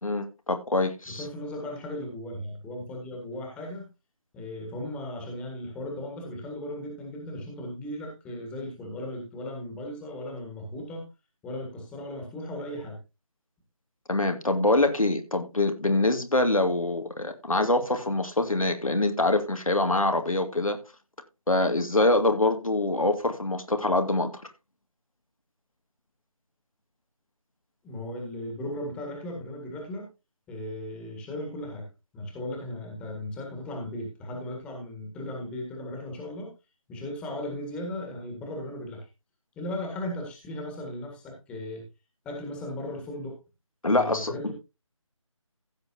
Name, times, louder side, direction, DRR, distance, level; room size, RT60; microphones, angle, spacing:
voice 1, 0.0-1.2 14.1-20.8 21.5-24.3 43.8-44.5, left 2 dB, 80° left, 2.1 m, -24 dB
voice 2, 1.1-3.9 4.3-11.0 11.4-13.0 27.8-30.1 30.5-31.9 32.1-36.5 36.9-39.0 39.6-41.8 42.3-43.4 43.9-44.5, left 1 dB, 5° left, 1.8 m, -36 dB
15.5 x 7.5 x 2.8 m
figure-of-eight pair, 160°, 17 cm